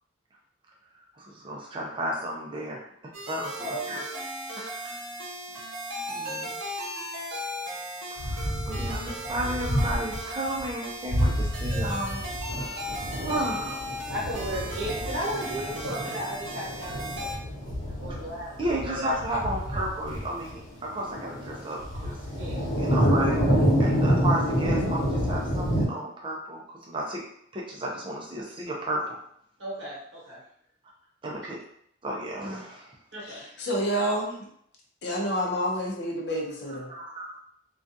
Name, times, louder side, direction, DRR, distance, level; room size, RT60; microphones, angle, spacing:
voice 1, 1.1-2.8 3.3-4.2 4.5-5.0 6.1-6.6 8.1-12.2 12.6-12.9 13.2-13.8 15.9-16.1 17.9-18.2 18.6-22.2 22.8-27.2 27.5-29.2 31.2-31.6 32.0-32.9 36.7-37.4, right 1 dB, 25° right, -2 dB, 0.4 m, -33 dB
sound 1, 3.1-17.3, equal, 85° right, 0.7 m, -36 dB
voice 2, 3.6-4.1 14.1-17.5 18.0-18.5 18.9-19.1 22.3-22.7 29.6-30.4 33.1-33.5, right 1 dB, 65° right, -6 dB, 1.0 m, -35 dB
sound 2, 8.2-10.2 10.6-10.7 11.1-25.9, equal, 80° left, 1.0 m, -28 dB
voice 3, 33.2-34.5 35.0-36.9, equal, 55° left, 0 dB, 0.5 m, -29 dB
2.3 x 2.3 x 2.6 m, 0.69 s
head